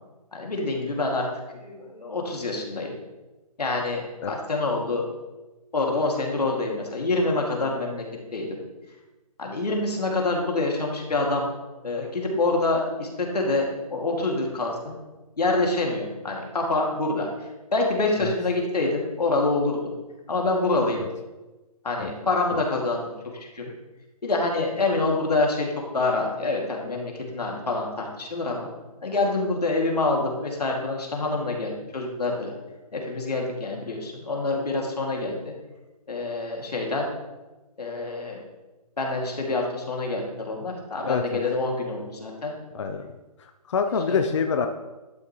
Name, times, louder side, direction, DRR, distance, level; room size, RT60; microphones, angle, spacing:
voice 1, 0.3-1.3 1.5-2.9 3.6-5.0 5.7-8.0 8.3-8.6 9.4-11.5 11.8-15.0 15.4-17.3 17.7-19.9 20.3-21.0 21.8-23.7 24.2-25.7 25.9-28.7 29.0-32.5 32.9-35.5 36.1-37.1 37.8-38.4 39.0-42.6 44.1-44.2, left 2 dB, 90° left, 0 dB, 2.3 m, -26 dB
voice 2, 41.0-41.4 42.7-43.0 43.4-44.7, left 5 dB, 50° left, 6 dB, 0.5 m, -26 dB
11.5 x 6.2 x 3.1 m, 1.1 s
hypercardioid pair, 160°, 20 cm